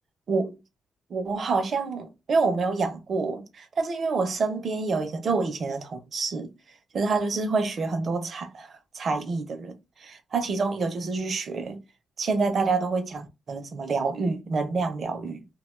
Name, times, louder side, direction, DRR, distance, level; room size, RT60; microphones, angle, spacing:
voice 1, 0.3-0.6 1.1-6.5 6.9-11.8 12.2-15.4, right 4 dB, 40° right, 0.5 m, -27 dB
2.7 x 2.2 x 3.0 m
wide cardioid pair, 155°, 0 cm